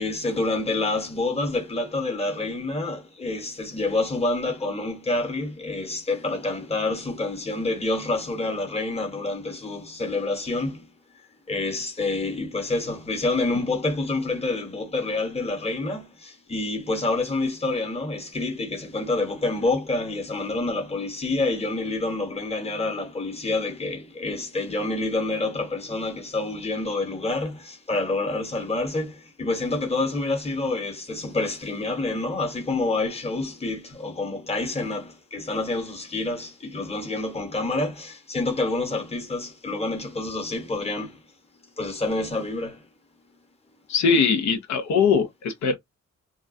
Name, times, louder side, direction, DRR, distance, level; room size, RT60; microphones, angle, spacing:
voice 1, 0.0-10.9 11.5-41.2 41.8-42.9, left 2 dB, 20° left, 1.0 m, -28 dB
voice 2, 43.9-45.7, left 5 dB, 75° left, 0.6 m, -21 dB
2.3 x 2.1 x 2.5 m
cardioid pair, 105°, 29 cm